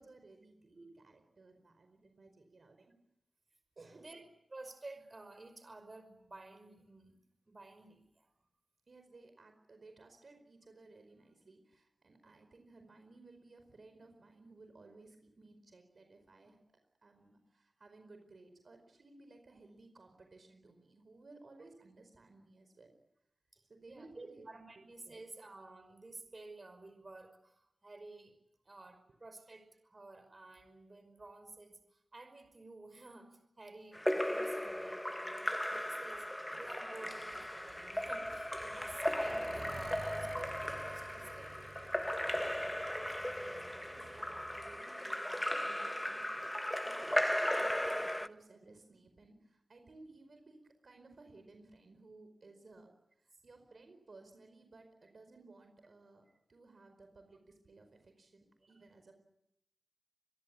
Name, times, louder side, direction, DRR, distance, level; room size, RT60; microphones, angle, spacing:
voice 1, 0.0-2.9 3.8-4.1 8.9-16.6 17.0-22.9 23.7-24.5 24.8-25.2 29.1-29.2 43.0-52.9 53.2-59.1, right 3 dB, 55° right, 6 dB, 4.8 m, -58 dB
voice 2, 4.5-7.2 7.5-8.3 23.9-28.3 28.7-33.3 33.6-36.3 36.6-41.6 52.7-52.8, right 2 dB, 35° right, 8 dB, 5.6 m, -52 dB
Splash splatter / Drip / Trickle dribble, 33.9-48.3, left 1 dB, 10° left, 1.0 m, -37 dB
Accelerating revving vroom, 36.5-44.8, right 4 dB, 75° right, 6.8 m, -54 dB
26.5 x 22.5 x 8.6 m, 0.82 s
wide cardioid pair, 105°, 0 cm